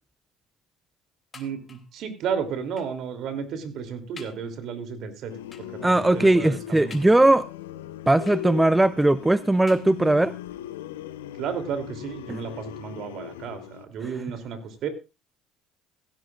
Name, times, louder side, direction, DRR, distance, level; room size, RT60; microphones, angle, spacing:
sound 1, 1.3-2.0 2.8-3.1 3.6-3.7 4.2-4.5 5.5-5.9 6.9-7.5 8.3-8.9 9.7-10.3 11.2-11.3 11.6-11.7, left 5 dB, 30° left, 2.9 m, -49 dB
voice 1, 1.3-5.3 5.6-7.0 11.4-14.9, right 7 dB, 60° right, 3.0 m, -33 dB
sound 2, 5.3-13.9, left 13 dB, 90° left, 0.7 m, -39 dB
voice 2, 5.8-7.5 8.1-10.3 12.3-12.4, right 2 dB, 10° right, 0.6 m, -19 dB
16.5 x 16.0 x 2.5 m
hypercardioid pair, 70°, 0 cm